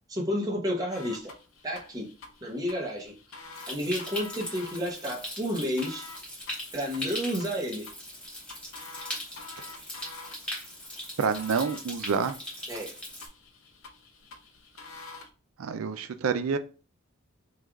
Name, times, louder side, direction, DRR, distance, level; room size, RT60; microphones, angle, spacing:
voice 1, 0.1-1.3 1.6-2.1 2.4-3.1 3.7-6.1 6.7-7.9 12.7-12.9, equal, 20° right, -3 dB, 0.7 m, -31 dB
sound 1, 0.9-15.3, left 3 dB, 70° left, 0.6 m, -48 dB
Stream, 3.5-13.3, left 1 dB, 5° left, 0.9 m, -40 dB
voice 2, 11.2-12.4 15.6-16.6, right 5 dB, 85° right, 10 dB, 0.4 m, -28 dB
3.2 x 2.3 x 3.5 m, 0.35 s
head